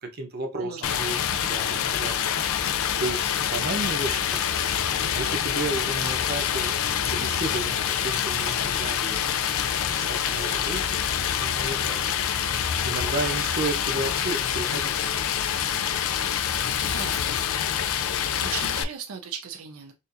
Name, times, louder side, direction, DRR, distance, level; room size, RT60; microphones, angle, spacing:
voice 1, 0.0-2.3 3.0-12.3 12.8-15.2, right 2 dB, 45° right, 0.8 m, -34 dB
voice 2, 0.5-1.6 16.9-17.2 17.8-18.1 18.4-19.9, right 7 dB, 85° right, 0.5 m, -38 dB
Stream, 0.8-18.8, left 9 dB, 70° left, 0.4 m, -26 dB
4.3 x 2.6 x 2.5 m
head